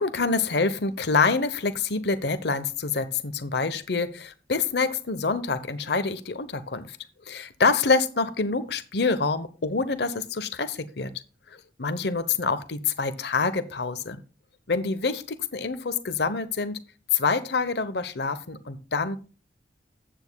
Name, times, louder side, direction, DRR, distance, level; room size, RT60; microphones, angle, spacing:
voice 1, 0.0-7.0 7.3-11.1 11.8-14.2 14.7-16.8 17.1-19.2, left 4 dB, 65° left, 11 dB, 1.0 m, -26 dB
14.5 x 8.8 x 2.3 m, 0.35 s
head